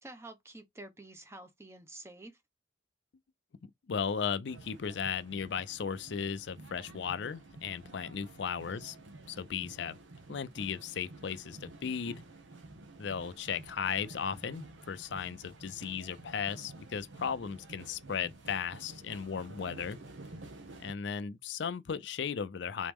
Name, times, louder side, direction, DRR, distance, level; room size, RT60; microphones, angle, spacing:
voice 1, 0.0-2.3 8.7-8.9 15.6-16.0, right 2 dB, 15° right, 0.6 m, -49 dB
voice 2, 3.6-9.0 9.3-10.0 10.3-12.2 13.0-20.0 20.8-22.9, left 6 dB, 70° left, 0.4 m, -36 dB
sound 1, 4.5-20.9, right 2 dB, 85° right, 0.9 m, -51 dB
3.9 x 3.1 x 3.5 m
head